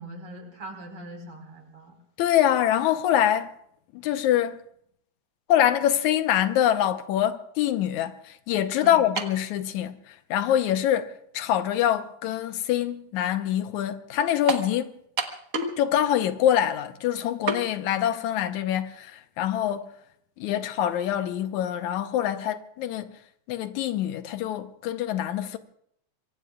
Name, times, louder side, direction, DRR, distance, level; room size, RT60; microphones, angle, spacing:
voice 1, 0.0-1.9 8.8-9.1, right 1 dB, 45° right, 5.2 m, -41 dB
voice 2, 2.2-3.5 3.9-4.6 5.5-15.0 15.8-19.9 20.4-23.2 23.5-25.6, left 11 dB, 85° left, 2.2 m, -25 dB
sound 1, 9.2-9.4 10.3-10.4 14.5-14.7 15.2-15.8 16.1-16.2 17.5-17.7, right 3 dB, 80° right, 0.7 m, -29 dB
26.0 x 23.5 x 2.4 m
omnidirectional pair, 3.3 m